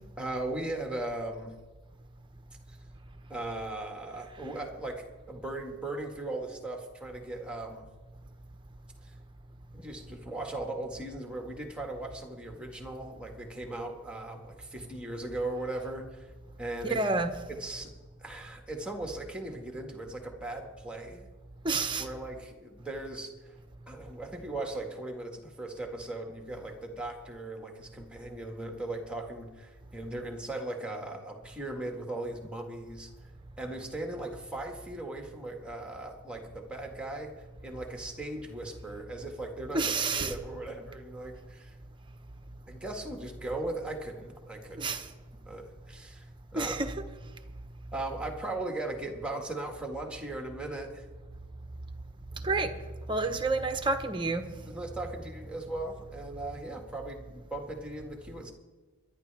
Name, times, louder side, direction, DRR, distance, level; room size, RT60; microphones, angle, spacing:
voice 1, 0.2-1.6 2.7-2.8 3.3-7.9 9.0-9.1 9.7-16.3 16.6-17.0 17.5-17.9 18.2-21.3 22.0-23.6 23.9-33.1 33.6-41.7 42.7-45.0 45.5-46.3 46.5-46.8 47.9-51.1 53.1-53.2 54.7-58.5, right 2 dB, 5° right, 2 dB, 1.8 m, -38 dB
voice 2, 16.9-17.3 21.6-22.1 39.7-40.3 44.7-45.1 46.5-46.9 52.4-52.7 53.1-54.4, right 3 dB, 20° right, 7 dB, 1.1 m, -29 dB
22.5 x 11.5 x 3.5 m, 1.3 s
head